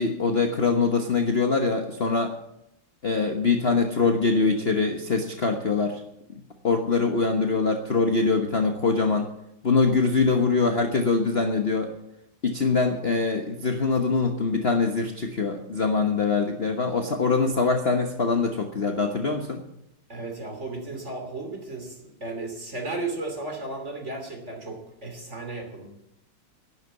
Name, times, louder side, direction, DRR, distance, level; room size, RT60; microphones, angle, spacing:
voice 1, 0.0-2.3 3.0-6.0 6.6-9.3 9.6-11.9 12.4-19.6, left 4 dB, 35° left, 3 dB, 1.1 m, -23 dB
voice 2, 20.1-21.9 22.2-25.9, right 2 dB, 35° right, 3 dB, 3.1 m, -34 dB
11.5 x 11.0 x 8.3 m, 0.81 s
omnidirectional pair, 2.3 m